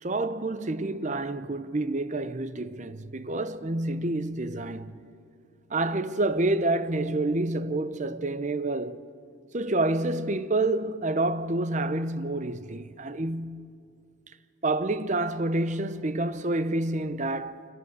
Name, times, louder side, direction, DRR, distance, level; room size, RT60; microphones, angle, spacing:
voice 1, 0.0-5.0 5.7-9.0 9.5-13.7 14.6-17.7, right 2 dB, 35° right, 0.7 m, -28 dB
26.0 x 18.5 x 8.1 m
head